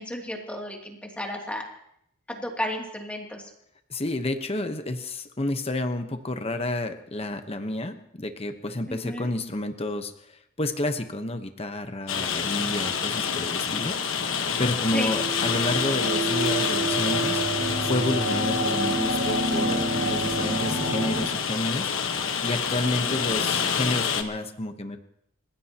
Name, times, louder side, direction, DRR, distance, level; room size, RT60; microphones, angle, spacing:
voice 1, 0.0-1.6 2.3-3.5 8.9-9.3 14.9-15.1 22.8-23.2, left 1 dB, 5° left, 0 dB, 2.7 m, -33 dB
voice 2, 3.9-14.0 14.6-17.4 17.8-21.9 22.4-25.0, left 1 dB, 30° left, 7 dB, 1.1 m, -30 dB
Rain, 12.1-24.2, left 6 dB, 65° left, 1.3 m, -27 dB
sound 1, 15.0-21.3, right 2 dB, 85° right, 2.9 m, -28 dB
30.0 x 16.0 x 3.0 m, 0.73 s
head